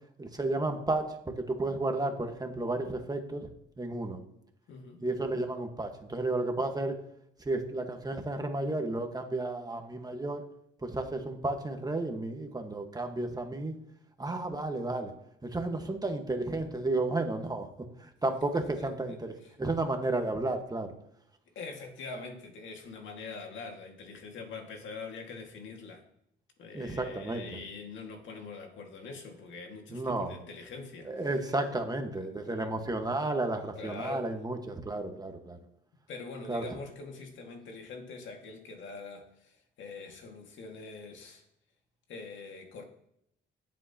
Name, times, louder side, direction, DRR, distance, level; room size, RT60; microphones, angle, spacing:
voice 1, 0.2-3.5 3.8-4.2 5.0-7.0 7.4-10.4 10.8-13.7 14.2-15.1 15.4-17.7 18.0-20.9 26.7-27.5 29.9-30.4 31.0-35.6 36.5-36.6, right 2 dB, 20° right, 4 dB, 1.4 m, -32 dB
voice 2, 4.7-5.0 18.5-19.2 21.6-26.0 26.6-31.3 32.1-32.9 33.8-34.3 36.1-41.4 42.1-42.8, left 4 dB, 70° left, 3 dB, 2.0 m, -44 dB
18.0 x 7.6 x 2.9 m, 0.74 s
cardioid pair, 90°, 20 cm